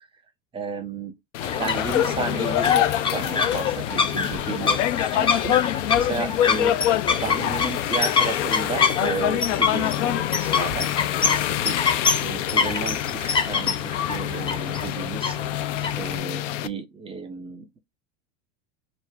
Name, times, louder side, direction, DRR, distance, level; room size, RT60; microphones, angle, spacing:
voice 1, 0.5-1.1 1.6-6.8 7.2-10.9 11.4-11.9 12.2-15.4 16.0-17.8, right 4 dB, 15° right, 0.8 m, -33 dB
sound 1, 1.3-16.7, left 12 dB, 90° left, 0.6 m, -26 dB
sound 2, 1.4-16.2, left 5 dB, 15° left, 0.6 m, -26 dB
3.3 x 2.7 x 4.4 m
supercardioid pair, 135°, 36 cm